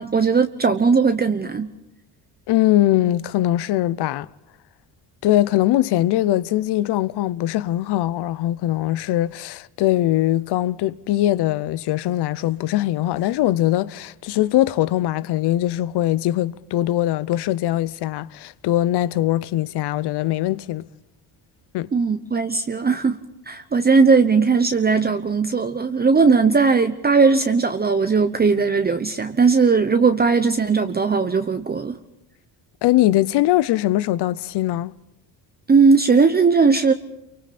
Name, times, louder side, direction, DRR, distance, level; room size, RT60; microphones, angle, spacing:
voice 1, 0.0-1.7 21.9-23.2 23.5-32.0 35.7-36.9, right 4 dB, 25° right, 0.9 m, -18 dB
voice 2, 2.5-4.3 5.2-20.9 21.7-21.9 32.8-34.9, left 14 dB, 75° left, 0.8 m, -21 dB
29.0 x 24.0 x 4.2 m
cardioid pair, 105°, 41 cm